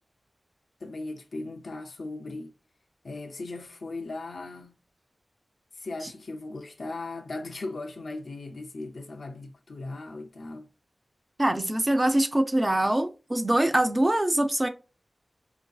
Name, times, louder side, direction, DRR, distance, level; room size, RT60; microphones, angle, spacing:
voice 1, 0.8-2.5 3.0-4.7 5.7-10.7, left 2 dB, 65° left, 0.4 m, -38 dB
voice 2, 11.4-14.7, right 1 dB, 20° right, 0.4 m, -24 dB
4.5 x 2.6 x 2.2 m
wide cardioid pair, 85°, 0 cm